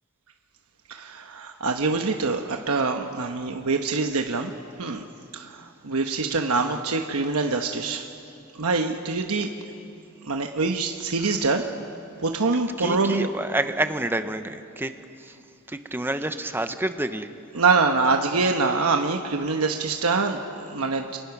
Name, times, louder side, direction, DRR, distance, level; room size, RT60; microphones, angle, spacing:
voice 1, 0.9-4.5 4.8-5.0 5.3-8.1 8.6-9.5 10.3-11.7 12.2-13.3 17.5-21.2, right 4 dB, 80° right, 4 dB, 1.1 m, -25 dB
voice 2, 12.8-14.9 15.7-17.3, right 1 dB, 10° right, 9 dB, 0.7 m, -28 dB
29.0 x 23.5 x 6.0 m, 2.6 s
head